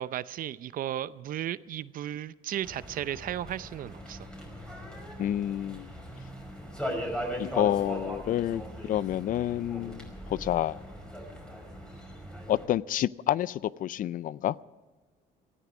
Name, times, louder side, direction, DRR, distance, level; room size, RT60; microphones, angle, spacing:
voice 1, 0.0-4.3, right 11 dB, 55° right, 0.6 m, -35 dB
sound 1, 2.6-12.7, equal, 5° left, 5.1 m, -39 dB
voice 2, 5.2-5.9 7.4-10.8 12.5-14.5, left 12 dB, 55° left, 0.4 m, -29 dB
18.5 x 14.0 x 5.0 m
cardioid pair, 110°, 17 cm